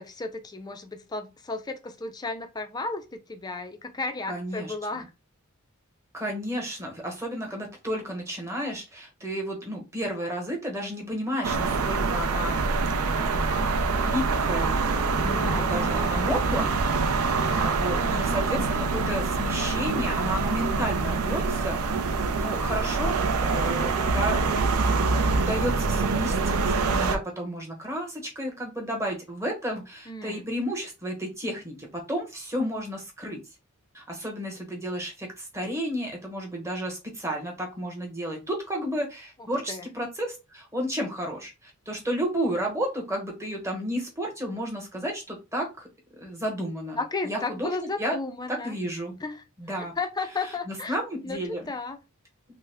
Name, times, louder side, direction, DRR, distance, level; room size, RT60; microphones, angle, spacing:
voice 1, 0.0-5.1 15.2-15.7 22.6-23.1 30.1-30.4 39.4-39.9 47.0-48.8 49.2-49.4 49.8-51.0 51.2-52.0, left 3 dB, 20° left, 0.4 m, -34 dB
voice 2, 4.3-5.0 6.1-13.7 14.0-16.9 17.2-21.8 22.3-24.4 25.3-33.4 33.9-45.9 46.2-47.0 47.2-48.2 48.5-49.1 49.6-49.9 50.4-51.6, equal, 15° right, 1.0 m, -32 dB
sound 1, 11.4-27.2, right 4 dB, 75° right, 0.5 m, -25 dB
3.3 x 2.1 x 3.3 m
head